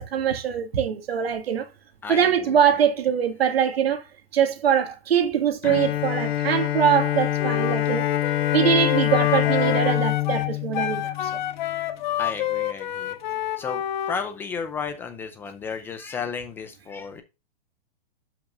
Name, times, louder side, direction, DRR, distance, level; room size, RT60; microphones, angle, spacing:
voice 1, 0.0-1.7 2.1-4.0 4.3-8.1 8.5-11.3, right 8 dB, 90° right, 2.0 m, -23 dB
Bowed string instrument, 5.6-11.8, left 13 dB, 85° left, 1.1 m, -25 dB
Wind instrument woodwind instrument, 7.4-14.2, left 12 dB, 50° left, 1.3 m, -29 dB
voice 2, 12.2-13.1 13.6-13.8 14.1-17.2, left 5 dB, 10° left, 0.4 m, -33 dB
11.5 x 5.8 x 2.5 m
hypercardioid pair, 160°, 30 cm